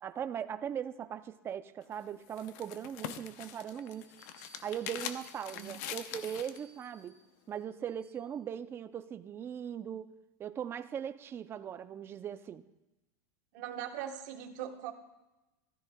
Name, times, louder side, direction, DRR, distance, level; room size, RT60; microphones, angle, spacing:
voice 1, 0.0-4.1 4.6-7.2 7.5-10.1 10.4-12.6, right 9 dB, 25° right, 12 dB, 0.5 m, -39 dB
sound 1, 1.8-6.6, left 10 dB, 60° left, 0.7 m, -44 dB
Bell, 2.2-2.3 3.0-3.1 3.8-8.4, right 3 dB, 5° right, 2.0 m, -62 dB
voice 2, 13.5-14.9, right 10 dB, 60° right, 4 dB, 1.2 m, -40 dB
15.0 x 13.0 x 2.3 m, 1.0 s
supercardioid pair, 135°, 10 cm